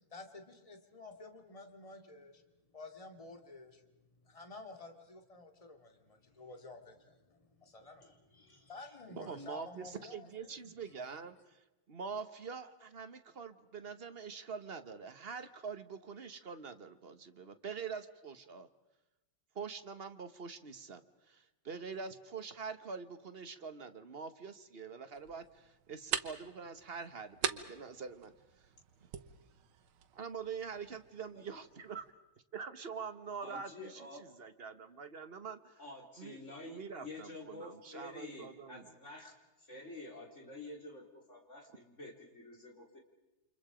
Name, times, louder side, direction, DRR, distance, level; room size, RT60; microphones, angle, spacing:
voice 1, 0.1-2.4 2.7-3.8 4.2-10.7 11.0-11.1, left 3 dB, 15° left, 5 dB, 2.2 m, -52 dB
voice 2, 8.0-8.9 31.4-31.5 33.4-34.3 35.8-43.0, left 2 dB, 35° left, 2 dB, 4.1 m, -50 dB
voice 3, 9.1-11.6 11.9-18.7 19.5-28.3 30.1-32.0 32.5-35.8 36.2-36.4 36.7-38.8, right 5 dB, 40° right, 10 dB, 1.0 m, -45 dB
sound 1, 25.1-32.1, right 9 dB, 85° right, 1.9 m, -43 dB
29.5 x 26.5 x 5.0 m, 1.0 s
omnidirectional pair, 2.3 m